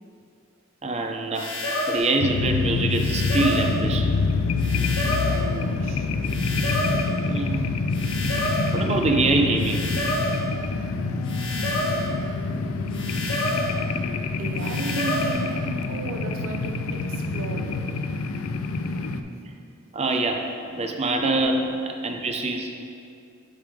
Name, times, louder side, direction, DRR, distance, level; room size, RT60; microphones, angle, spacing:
voice 1, 0.8-1.5 1.9-4.1 7.2-7.7 8.7-9.9 19.9-20.4 20.8-22.7, right 2 dB, 30° right, 3 dB, 0.6 m, -24 dB
sound 1, 1.3-2.1 2.9-3.7 4.6-5.4 6.3-7.1 7.9-8.7 9.6-10.4 11.2-12.1 12.9-13.7 14.6-15.4, left 1 dB, 60° left, 1.8 m, -28 dB
sound 2, 2.2-19.2, left 3 dB, 85° left, 0.4 m, -26 dB
voice 2, 5.1-6.1 7.5-7.9 14.4-18.0 18.9-19.6 20.8-20.9, right 3 dB, 85° right, 3 dB, 0.6 m, -36 dB
9.1 x 3.5 x 4.9 m, 2.4 s
head